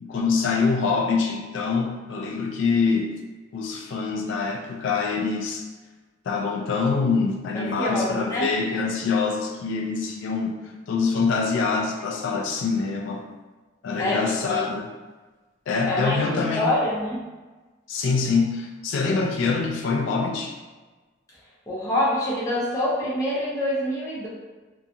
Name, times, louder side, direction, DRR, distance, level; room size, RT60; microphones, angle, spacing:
voice 1, 0.0-3.1 3.5-5.6 6.3-13.3 13.8-14.9 15.7-16.7 17.9-20.5, left 4 dB, 70° left, 1 dB, 0.3 m, -25 dB
voice 2, 7.5-8.5 14.0-14.6 15.9-16.2 16.6-17.2 21.7-24.3, left 1 dB, 15° left, -7 dB, 0.6 m, -25 dB
2.8 x 2.3 x 2.5 m, 1.2 s
head